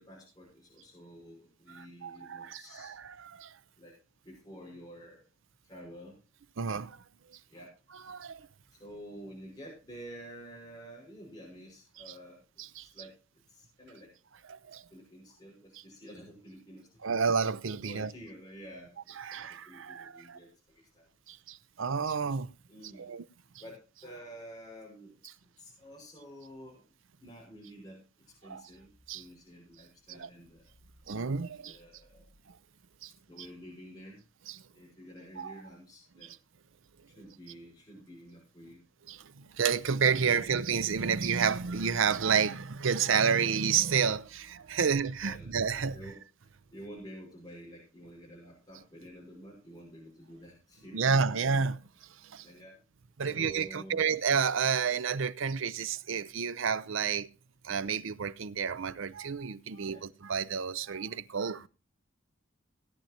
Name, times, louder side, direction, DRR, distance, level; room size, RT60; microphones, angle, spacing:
voice 1, 0.0-2.9 3.8-4.0 4.2-5.2 5.6-6.2 7.5-7.7 8.8-12.4 12.8-13.2 13.5-14.1 14.9-16.9 17.8-20.5 20.9-21.1 22.7-23.1 23.6-25.2 25.6-26.8 27.2-28.0 28.4-30.7 31.6-32.3 33.3-34.2 34.7-36.3 37.1-38.8 40.2-40.5 45.2-45.5 45.9-46.2 46.7-51.4 52.4-52.8 53.3-54.1 59.7-60.0, equal, 20° left, 5.4 m, -49 dB
voice 2, 1.7-3.5 6.6-7.0 8.1-8.5 12.6-12.9 14.5-14.8 17.0-18.1 19.2-20.4 21.3-22.5 23.0-23.2 28.4-28.6 29.1-29.2 30.1-30.3 31.1-31.8 33.0-33.1 34.5-34.6 35.4-35.5 36.2-36.4 39.1-46.0 50.9-51.8 52.2-52.5 53.2-57.3 57.6-61.7, right 6 dB, 70° right, 0.6 m, -30 dB
17.0 x 10.5 x 2.8 m
head